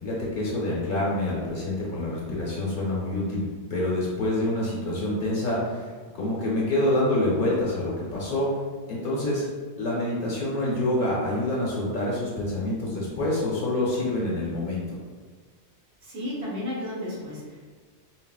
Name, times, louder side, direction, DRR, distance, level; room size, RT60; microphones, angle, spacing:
voice 1, 0.0-8.5 8.9-9.5 9.8-15.0, left 1 dB, 55° left, -5 dB, 0.9 m, -27 dB
voice 2, 16.0-17.6, left 1 dB, 65° right, -6 dB, 1.1 m, -33 dB
4.0 x 2.0 x 2.3 m, 1.5 s
omnidirectional pair, 1.2 m